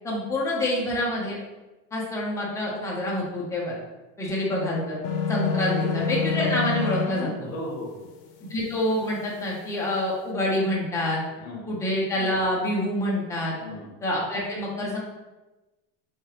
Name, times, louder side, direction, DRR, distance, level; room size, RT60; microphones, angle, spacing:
voice 1, 0.0-1.4 1.9-3.8 4.2-5.0 5.3-7.5 8.5-11.2 11.7-13.5 14.0-15.0, left 1 dB, 10° left, -4 dB, 0.4 m, -27 dB
sound 1, 5.0-7.3, left 6 dB, 65° left, 0.7 m, -26 dB
voice 2, 5.5-6.0 7.4-8.1 11.3-11.7 13.6-13.9, left 1 dB, 40° left, -1 dB, 1.1 m, -36 dB
3.7 x 3.2 x 2.7 m, 1.1 s
cardioid pair, 160°, 40 cm